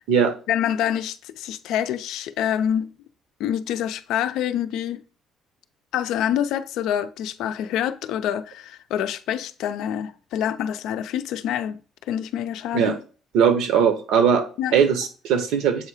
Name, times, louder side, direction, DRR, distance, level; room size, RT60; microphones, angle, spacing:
voice 1, 0.5-2.9 3.4-5.0 5.9-11.8 12.1-13.0 14.6-14.8, left 10 dB, 75° left, 0.4 m, -26 dB
voice 2, 13.3-14.4 14.7-15.9, right 7 dB, 80° right, 1.0 m, -19 dB
7.3 x 2.8 x 4.8 m
cardioid pair, 160°, 0 cm